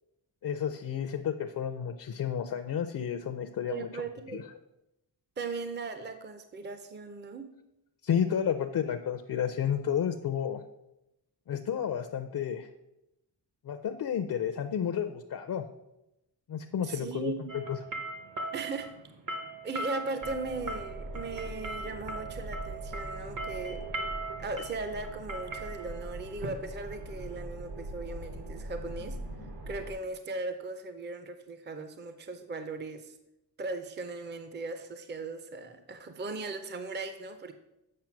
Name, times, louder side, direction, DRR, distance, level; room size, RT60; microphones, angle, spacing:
voice 1, 0.4-4.0 4.3-4.4 8.0-10.6 11.5-12.7 13.6-15.6 16.5-17.8, left 8 dB, 50° left, 7 dB, 0.5 m, -31 dB
voice 2, 3.7-4.5 5.4-7.5 16.8-17.5 18.5-18.9 19.6-23.8 24.4-29.2 29.7-33.1 33.6-37.5, right 3 dB, 25° right, 9 dB, 0.6 m, -38 dB
sound 1, 17.5-27.3, right 2 dB, 50° right, 1.1 m, -39 dB
sound 2, 20.2-29.9, right 1 dB, 80° right, 2.2 m, -42 dB
7.6 x 5.5 x 5.9 m, 0.88 s
wide cardioid pair, 150°, 42 cm